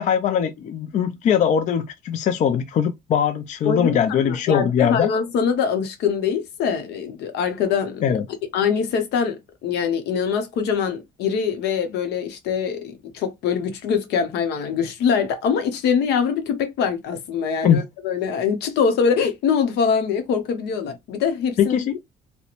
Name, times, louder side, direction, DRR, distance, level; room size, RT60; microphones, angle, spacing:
voice 1, 0.0-5.1 8.0-8.3 17.6-17.8 21.6-22.0, left 8 dB, 45° left, 0.4 m, -21 dB
voice 2, 3.6-4.0 4.2-8.0 8.5-21.8, left 6 dB, 80° left, 0.7 m, -23 dB
2.5 x 2.1 x 2.9 m
cardioid pair, 110°, 17 cm